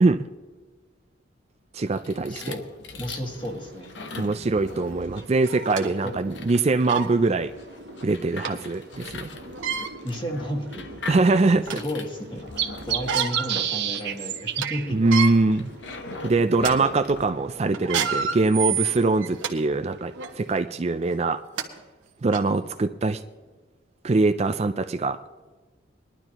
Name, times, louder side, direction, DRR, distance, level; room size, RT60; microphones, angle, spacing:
voice 1, 1.7-2.5 4.1-7.5 8.0-9.3 11.1-11.8 14.9-15.7 16.2-21.4 22.2-23.2 24.0-25.2, right 3 dB, 35° right, 9 dB, 0.4 m, -23 dB
sound 1, 1.9-17.3, left 3 dB, 65° left, 1.0 m, -41 dB
voice 2, 2.3-2.6 2.9-3.9 6.0-6.2 10.0-10.8 11.8-15.0, equal, 25° left, 2 dB, 1.9 m, -32 dB
sound 2, 3.1-20.4, right 9 dB, 60° right, 0.9 m, -37 dB
sound 3, 4.7-4.8 5.4-5.9 6.5-6.6 6.9-7.1 8.4-8.5 9.5-9.9 10.7-10.8 11.2-11.9 12.9-13.5 13.9-14.0 14.4-14.7 15.0-15.3 15.9-16.1 16.5-16.7 17.7-19.5 20.1-20.3 21.2-21.3 21.6-21.7 22.3-22.4, right 6 dB, 85° right, 1.4 m, -28 dB
21.0 x 12.0 x 3.0 m, 1.3 s
head